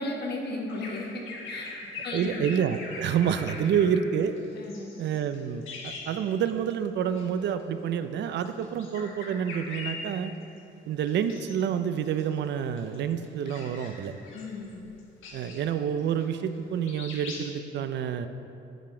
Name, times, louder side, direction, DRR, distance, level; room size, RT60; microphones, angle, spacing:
voice 1, 0.0-1.7 2.0-2.5 4.5-4.9 14.3-14.8, left 2 dB, 55° left, 0 dB, 1.2 m, -35 dB
Bird vocalization bird call bird song, 0.7-6.7 7.1-7.3 8.3-10.6 11.1-11.7 12.1-16.6 16.8-17.5, left 3 dB, 90° left, 1.1 m, -42 dB
voice 2, 2.1-4.3 5.0-10.3 10.9-14.1 15.3-18.3, right 8 dB, 60° right, 10 dB, 0.4 m, -28 dB
9.0 x 4.9 x 3.7 m, 2.7 s
cardioid pair, 90°, 20 cm